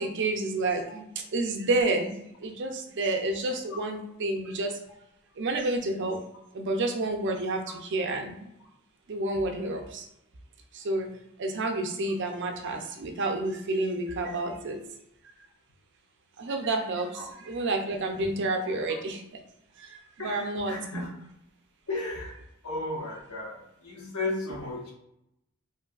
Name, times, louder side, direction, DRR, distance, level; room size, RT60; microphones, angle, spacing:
voice 1, 0.0-4.8 5.4-6.2 6.5-8.5 9.1-10.1 10.7-11.1 11.4-14.8 16.4-19.2 19.8-20.8, right 2 dB, 55° right, 4 dB, 0.5 m, -30 dB
voice 2, 20.2-21.2 21.9-22.3 22.6-24.9, left 2 dB, 85° left, -2 dB, 1.0 m, -35 dB
3.1 x 2.6 x 2.3 m, 0.81 s
head